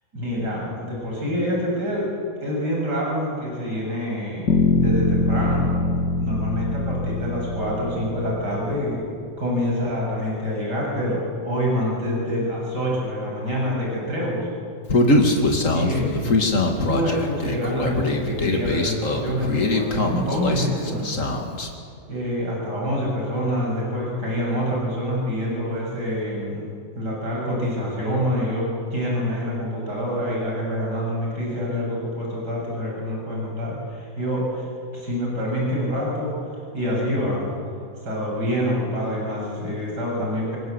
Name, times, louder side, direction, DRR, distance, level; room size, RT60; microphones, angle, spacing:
voice 1, 0.1-2.1 2.4-5.8 6.2-9.0 9.4-14.5 15.7-16.2 16.8-21.2 22.1-26.7 26.9-34.7 34.9-36.3 36.7-37.5 38.0-40.6, equal, 80° right, -3 dB, 8.2 m, -26 dB
sound 1, 4.5-8.5, left 2 dB, 75° left, 3.1 m, -23 dB
Human voice, 14.9-21.7, left 2 dB, 50° left, 2.8 m, -22 dB
28.0 x 24.0 x 8.2 m, 2.3 s
omnidirectional pair, 1.8 m